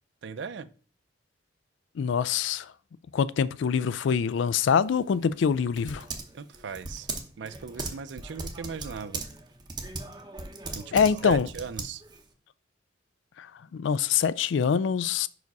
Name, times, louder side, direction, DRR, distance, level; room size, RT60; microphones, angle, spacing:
voice 1, 0.2-0.7 6.3-7.1 7.4-9.2 10.7-11.0 11.2-12.0, right 6 dB, 65° right, 0.4 m, -38 dB
voice 2, 2.0-2.7 3.1-6.1 10.9-11.5 13.4-15.3, left 7 dB, 70° left, 0.3 m, -25 dB
Typing, 4.8-12.3, right 3 dB, 20° right, 0.7 m, -39 dB
5.3 x 4.8 x 4.6 m
head